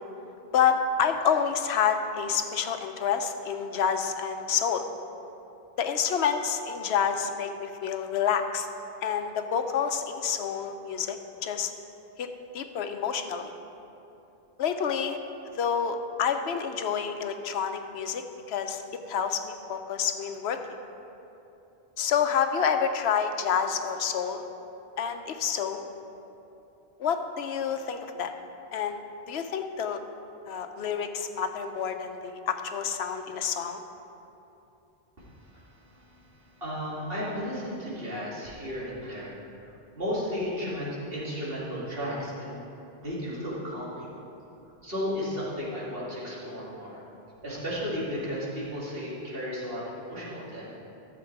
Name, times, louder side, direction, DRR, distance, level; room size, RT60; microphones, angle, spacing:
voice 1, 0.5-4.9 5.8-8.7 9.0-11.7 12.2-12.3 12.5-13.5 14.6-15.2 15.5-18.2 18.5-18.8 19.1-20.6 22.0-24.5 25.0-25.9 27.0-28.3 28.7-29.0 29.3-30.0 30.5-33.8, left 7 dB, 90° left, 7 dB, 1.0 m, -28 dB
voice 2, 35.2-39.4 39.6-42.7 43.0-44.1 44.8-47.0 47.4-50.6, equal, 65° right, -8 dB, 2.7 m, -34 dB
13.5 x 7.0 x 4.6 m, 2.9 s
omnidirectional pair, 1.1 m